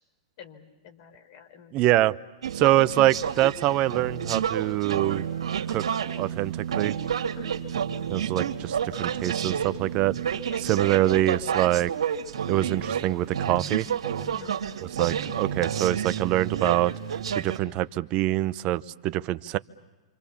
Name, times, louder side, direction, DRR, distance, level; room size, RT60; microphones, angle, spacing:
voice 1, 0.4-1.7 7.4-7.6 10.5-10.6 14.3-14.5, left 2 dB, 55° left, 5 dB, 4.2 m, -46 dB
voice 2, 1.7-2.1 2.5-5.3 5.7-5.9 6.2-6.9 8.1-11.9 12.5-13.9 14.8-19.6, right 15 dB, 40° right, 14 dB, 0.8 m, -25 dB
sound 1, 2.4-17.6, right 8 dB, 80° right, 2.4 m, -30 dB
28.0 x 26.0 x 7.2 m, 1.2 s
hypercardioid pair, 120°, 3 cm